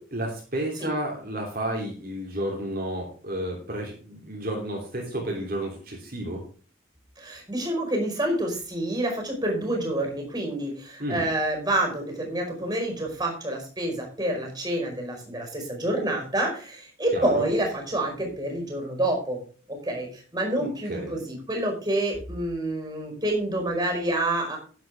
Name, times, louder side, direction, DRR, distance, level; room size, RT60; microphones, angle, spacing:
voice 1, 0.1-6.4 11.0-11.3 17.1-17.5 20.6-21.1, right 1 dB, 45° right, -1 dB, 3.2 m, -31 dB
voice 2, 7.5-10.7 11.1-13.9 14.2-15.4 15.8-16.5 17.0-18.1 18.4-19.4 19.9-20.0 20.3-24.6, right 1 dB, 20° right, 2 dB, 5.1 m, -27 dB
11.0 x 10.5 x 3.6 m, 0.40 s
head